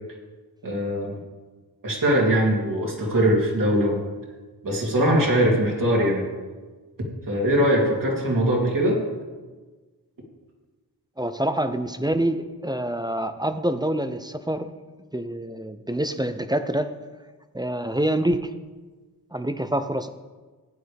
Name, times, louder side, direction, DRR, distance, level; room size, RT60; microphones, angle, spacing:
voice 1, 0.6-1.1 1.8-4.0 4.6-6.3 7.3-9.0, equal, 60° right, -3 dB, 3.0 m, -21 dB
voice 2, 11.2-14.8 15.1-16.9 17.5-18.5 19.3-20.1, right 1 dB, 10° right, 10 dB, 0.6 m, -26 dB
15.0 x 9.2 x 3.5 m, 1.3 s
wide cardioid pair, 80°, 37 cm